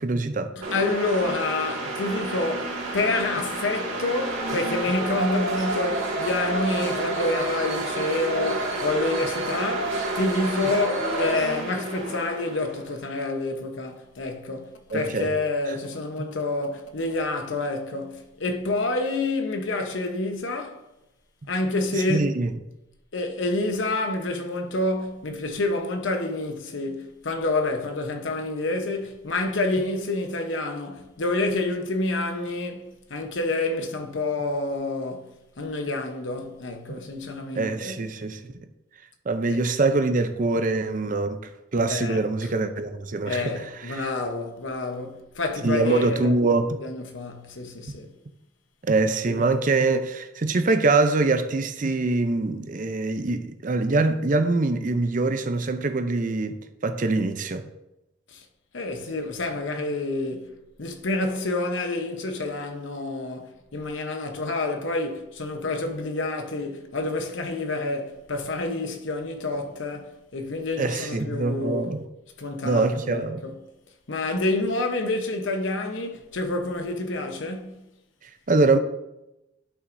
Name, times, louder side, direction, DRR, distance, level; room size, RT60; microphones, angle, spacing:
voice 1, 0.0-0.5 14.9-15.3 16.2-16.3 21.9-22.5 37.5-38.5 39.3-41.4 41.7-44.1 45.6-46.8 48.8-57.6 70.8-72.0 72.6-73.4 78.2-78.8, right 3 dB, 40° right, 0.5 m, -24 dB
sound 1, 0.6-12.9, right 2 dB, 90° right, 2.0 m, -29 dB
voice 2, 0.7-20.8 21.5-22.3 23.1-38.0 39.5-39.6 41.9-42.5 43.3-46.3 46.8-48.1 49.3-49.4 58.3-58.4 58.7-71.9 72.4-73.5 74.1-77.7, left 2 dB, 70° left, 0.9 m, -28 dB
11.0 x 5.8 x 2.6 m
head